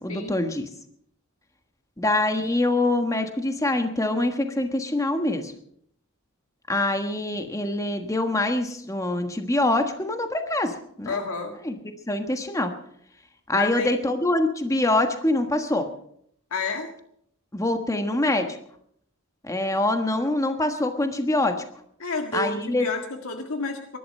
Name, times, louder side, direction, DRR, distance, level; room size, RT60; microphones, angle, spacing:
voice 1, 0.0-0.7 2.0-5.5 6.7-11.2 11.6-11.7 12.1-12.7 13.5-15.9 17.5-18.6 19.4-21.6 22.3-22.8, left 2 dB, 15° left, 6 dB, 1.3 m, -24 dB
voice 2, 11.1-11.6 13.5-13.9 16.5-16.9 22.0-24.0, left 4 dB, 70° left, 4 dB, 1.8 m, -30 dB
21.5 x 11.5 x 5.5 m, 0.68 s
head